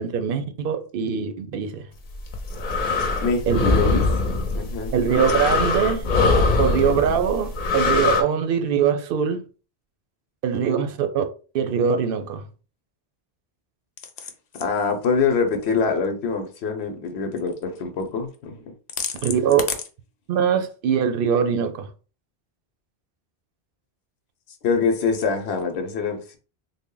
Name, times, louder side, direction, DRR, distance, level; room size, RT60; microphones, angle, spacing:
voice 1, 0.0-1.8 3.5-3.7 4.9-6.1 6.6-9.4 10.4-11.2 11.5-12.4 19.2-19.6 20.3-21.9, right 7 dB, 65° right, 0.7 m, -22 dB
sound 1, 2.1-8.2, left 3 dB, 50° left, 0.7 m, -22 dB
voice 2, 3.2-4.0 4.5-4.9 14.6-19.1 24.6-26.4, left 5 dB, 85° left, 0.9 m, -24 dB
3.4 x 2.1 x 3.7 m
omnidirectional pair, 1.1 m